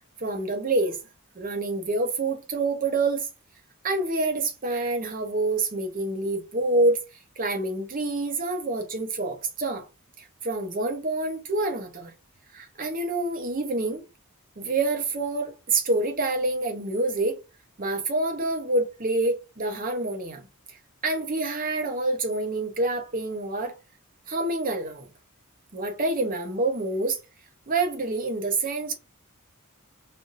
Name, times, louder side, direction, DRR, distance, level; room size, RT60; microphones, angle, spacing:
voice 1, 0.2-1.0 1.4-3.3 3.8-7.0 7.4-9.9 10.2-12.1 12.5-14.0 14.6-17.4 17.8-20.5 21.0-23.7 24.3-25.1 25.7-27.2 27.7-28.9, right 2 dB, 40° right, 0.7 m, -27 dB
3.4 x 2.6 x 2.5 m
head